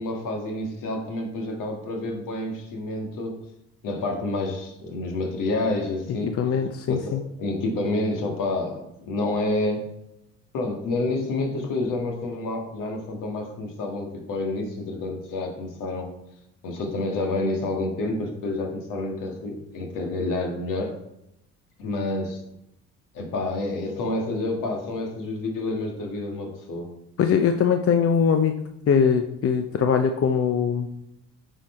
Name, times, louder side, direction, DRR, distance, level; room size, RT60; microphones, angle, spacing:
voice 1, 0.0-3.4 3.8-6.4 6.9-9.9 10.5-16.1 16.6-21.0 21.8-22.4 23.1-26.9, left 2 dB, 65° left, 2 dB, 1.9 m, -29 dB
voice 2, 6.2-7.2 27.2-28.6 28.9-30.9, left 7 dB, 40° left, 7 dB, 0.7 m, -21 dB
9.1 x 4.6 x 4.4 m, 0.82 s
hypercardioid pair, 55°, 35 cm